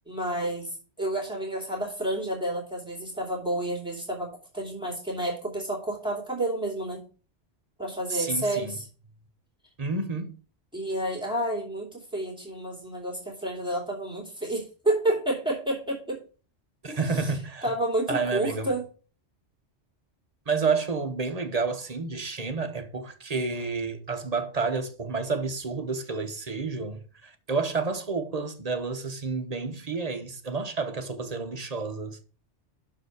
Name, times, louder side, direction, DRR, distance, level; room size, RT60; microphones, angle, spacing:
voice 1, 0.1-4.3 4.5-7.0 7.8-8.8 10.7-16.2 16.9-17.0 17.6-18.8, right 1 dB, 5° right, 2.7 m, -30 dB
voice 2, 8.1-8.8 9.8-10.3 16.8-17.6 18.1-18.7 20.5-32.2, right 4 dB, 35° right, 0.9 m, -30 dB
6.6 x 4.9 x 6.3 m
omnidirectional pair, 1.2 m